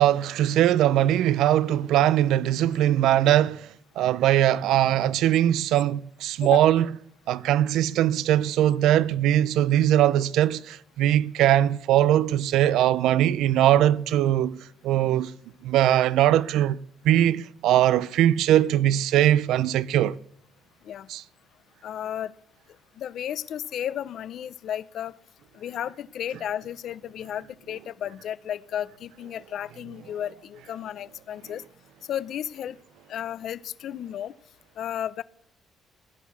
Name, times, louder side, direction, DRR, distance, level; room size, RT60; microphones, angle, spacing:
voice 1, 0.0-3.6 4.0-6.9 7.3-14.6 14.8-15.3 15.6-16.8 17.0-20.2 21.1-21.2, right 12 dB, 90° right, 0.5 m, -21 dB
voice 2, 21.8-22.3 23.0-25.2 25.5-31.6 32.1-32.8 33.1-34.3 34.8-35.2, left 10 dB, 55° left, 0.6 m, -33 dB
16.5 x 11.5 x 6.9 m
cardioid pair, 165°, 0 cm